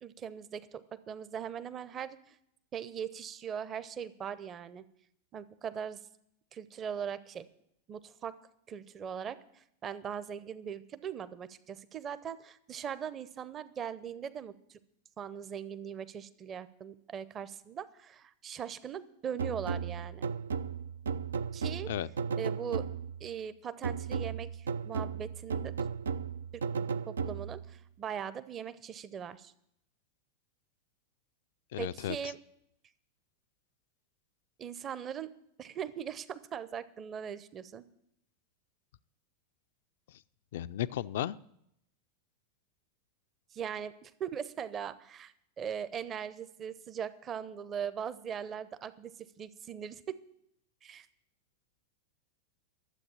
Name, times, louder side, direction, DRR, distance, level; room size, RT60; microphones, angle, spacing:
voice 1, 0.0-2.4 2.7-4.8 5.3-6.0 6.5-7.4 7.9-8.4 8.7-14.8 15.2-20.3 21.5-21.9 22.4-22.8 23.2-25.7 26.5-26.6 27.1-29.5 31.8-32.4 34.6-35.3 35.6-37.8 43.5-50.2 50.8-51.1, right 8 dB, 25° right, 15 dB, 0.7 m, -40 dB
sound 1, 19.4-23.3 23.8-27.7, right 6 dB, 70° right, 0.4 m, -35 dB
voice 2, 31.7-32.2 40.5-41.4, left 12 dB, 55° left, 15 dB, 0.4 m, -34 dB
12.5 x 7.8 x 8.7 m, 0.75 s
figure-of-eight pair, 90°, 0 cm